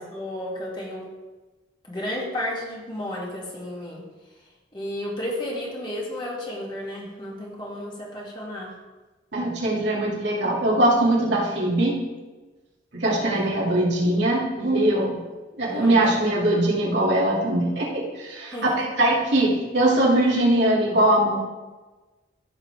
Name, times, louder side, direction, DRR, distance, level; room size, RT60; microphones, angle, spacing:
voice 1, 0.1-1.1 1.9-4.0 4.7-8.7 13.3-13.6 15.7-16.3 18.5-18.9, left 1 dB, 25° left, -4 dB, 2.5 m, -32 dB
voice 2, 9.3-12.0 12.9-15.2 15.6-21.4, right 1 dB, 70° right, -4 dB, 2.4 m, -21 dB
14.5 x 6.8 x 3.5 m, 1.2 s
head